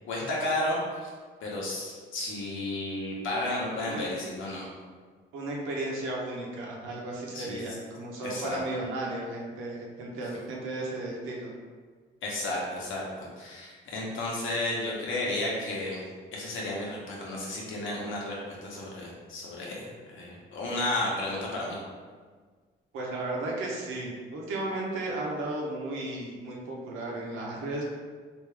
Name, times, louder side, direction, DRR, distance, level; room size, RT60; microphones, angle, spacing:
voice 1, 0.1-1.1 1.4-4.6 7.3-7.7 8.2-8.6 12.2-16.0 16.3-21.8, left 1 dB, 80° left, -4 dB, 1.0 m, -33 dB
voice 2, 5.3-11.5 22.9-27.8, right 2 dB, 90° right, -2 dB, 0.8 m, -34 dB
3.4 x 2.6 x 3.3 m, 1.5 s
cardioid pair, 90°, 20 cm